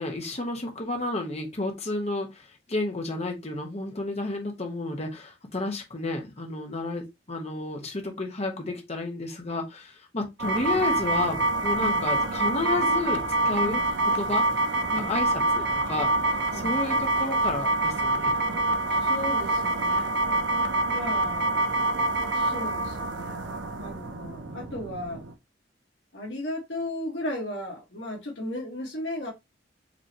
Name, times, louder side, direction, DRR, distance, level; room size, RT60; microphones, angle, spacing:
voice 1, 0.0-13.8 14.2-14.5 15.0-16.1 16.6-18.6, left 2 dB, 35° left, 1.1 m, -31 dB
sound 1, 10.4-25.3, right 1 dB, 90° right, 0.7 m, -26 dB
voice 2, 11.8-12.1 13.6-13.9 14.9-15.2 16.5-16.7 18.9-20.2 20.9-21.6 22.0-25.2 26.1-29.3, left 1 dB, 80° left, 1.7 m, -36 dB
5.2 x 3.1 x 2.9 m
head